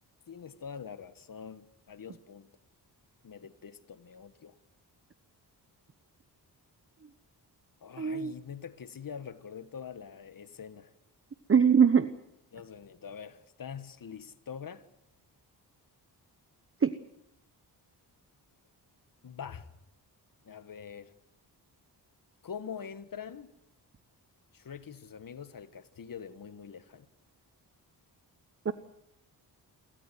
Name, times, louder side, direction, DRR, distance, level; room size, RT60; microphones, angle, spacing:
voice 1, 0.3-2.5 3.2-4.5 7.8-10.9 12.5-14.8 19.2-19.7 20.4-21.1 22.4-23.5 24.5-27.1, left 7 dB, 50° left, 1.5 m, -44 dB
voice 2, 8.0-8.3 11.5-12.1 16.8-16.9 28.6-28.7, right 7 dB, 30° right, 1.0 m, -22 dB
28.5 x 13.5 x 9.4 m
cardioid pair, 85°, 41 cm